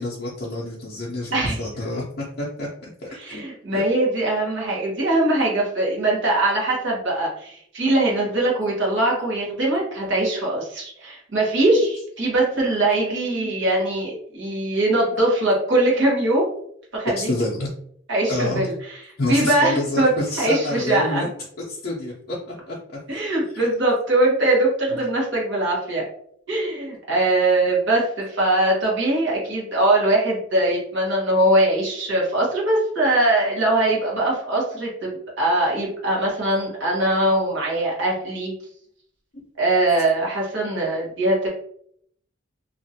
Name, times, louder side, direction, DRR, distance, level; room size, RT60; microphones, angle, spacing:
voice 1, 0.0-3.4 3.7-3.8 8.2-8.3 9.1-9.3 9.9-10.0 11.8-11.9 12.5-12.6 13.0-14.0 15.0-15.2 17.1-17.7 18.3-18.7 19.2-21.3 21.7-22.4 22.7-22.8 23.5-23.6 33.8-34.1 34.7-34.8, left 1 dB, 50° left, -5 dB, 0.6 m, -29 dB
voice 2, 3.1-16.5 16.9-17.3 18.1-19.0 19.3-20.1 20.4-21.2 23.1-26.0 26.5-38.5 39.6-41.5, right 1 dB, 60° right, -4 dB, 1.3 m, -21 dB
2.8 x 2.5 x 2.8 m, 0.66 s
head